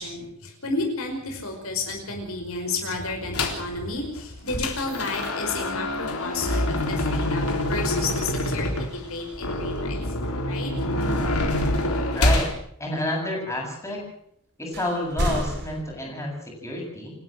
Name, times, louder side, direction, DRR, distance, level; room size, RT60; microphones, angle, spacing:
voice 1, 0.0-10.0 10.5-10.7, left 3 dB, 70° left, 2 dB, 5.4 m, -31 dB
sound 1, 3.3-3.7 4.2-12.5, left 1 dB, 90° left, 3.8 m, -26 dB
sound 2, 5.8-6.6 7.3-8.3 11.8-11.9 14.0-14.1 14.7-15.8, equal, 50° right, 4.0 m, -32 dB
voice 2, 12.1-12.5 12.8-14.0 14.6-17.1, left 1 dB, 15° left, -1 dB, 7.9 m, -29 dB
29.0 x 12.5 x 7.7 m, 0.68 s
head